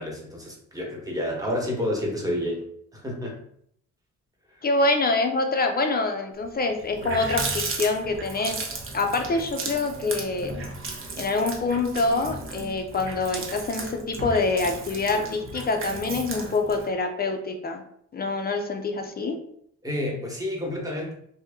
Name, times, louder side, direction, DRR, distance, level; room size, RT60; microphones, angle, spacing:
voice 1, 0.0-2.6 2.9-3.4 4.6-4.7 19.8-21.1, left 1 dB, 10° right, -1 dB, 1.2 m, -29 dB
voice 2, 4.6-8.6 8.9-10.6 11.2-17.8 18.1-19.4, left 3 dB, 30° left, 5 dB, 0.6 m, -25 dB
Water tap faucet, 6.4-6.5 6.8-16.9, right 3 dB, 45° right, 0.8 m, -35 dB
2.9 x 2.8 x 3.6 m, 0.68 s
cardioid pair, 90°, 30 cm